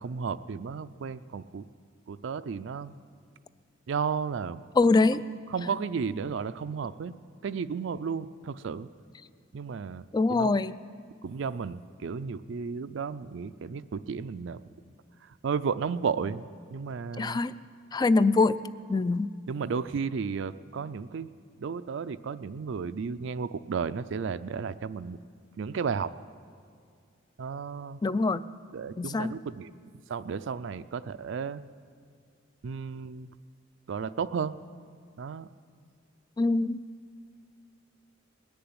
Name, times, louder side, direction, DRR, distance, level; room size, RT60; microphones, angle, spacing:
voice 1, 0.0-1.7 2.1-2.9 3.9-4.6 5.5-8.9 9.5-10.5 11.2-14.6 15.2-17.4 19.5-21.3 21.6-25.2 25.6-26.1 27.4-28.0 28.7-29.7 30.1-31.6 32.6-33.3 33.9-34.6 35.2-35.5, right 5 dB, 65° right, 13 dB, 0.4 m, -33 dB
voice 2, 4.8-5.2 10.1-10.7 17.2-17.5 17.9-18.5 18.9-19.3 28.0-28.4 29.0-29.3 36.4-36.8, left 3 dB, 20° left, 16 dB, 0.3 m, -23 dB
21.0 x 7.0 x 9.6 m, 2.2 s
head